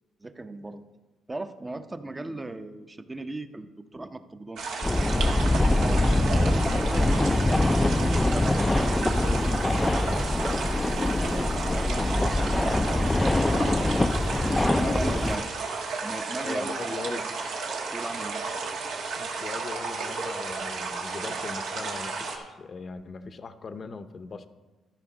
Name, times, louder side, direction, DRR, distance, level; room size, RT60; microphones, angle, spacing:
voice 1, 0.2-0.9 1.3-4.6 5.7-6.0 6.3-13.9 14.4-15.5 16.0-17.3 17.9-18.4, right 2 dB, 20° right, 9 dB, 0.7 m, -38 dB
sound 1, 4.6-22.4, right 4 dB, 80° right, 1.5 m, -33 dB
sound 2, 4.8-15.4, left 2 dB, 15° left, 0.4 m, -24 dB
voice 2, 14.8-15.5 16.4-17.3 19.2-24.5, left 4 dB, 45° left, 10 dB, 0.7 m, -39 dB
13.5 x 5.0 x 6.1 m, 1.2 s
cardioid pair, 90°, 0 cm